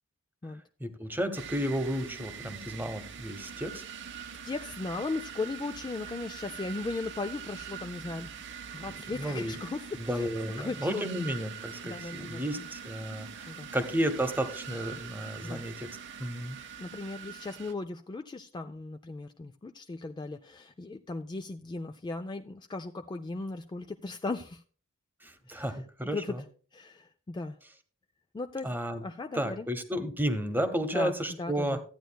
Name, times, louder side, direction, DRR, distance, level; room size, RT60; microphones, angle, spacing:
voice 1, 0.8-3.8 9.2-9.6 10.0-15.9 16.2-16.6 25.2-26.4 28.6-29.0 29.3-31.8, equal, 10° right, 8 dB, 0.9 m, -32 dB
sound 1, 1.3-17.7, right 8 dB, 60° right, 0.7 m, -43 dB
voice 2, 4.4-8.3 8.7-10.3 10.6-11.1 11.8-12.7 13.5-13.7 15.4-15.6 16.8-24.6 25.5-25.8 26.1-26.3 26.7-27.6 28.3-28.7 29.0-29.7 30.9-31.8, left 3 dB, 20° left, 8 dB, 0.3 m, -37 dB
14.5 x 9.1 x 2.2 m, 0.41 s
head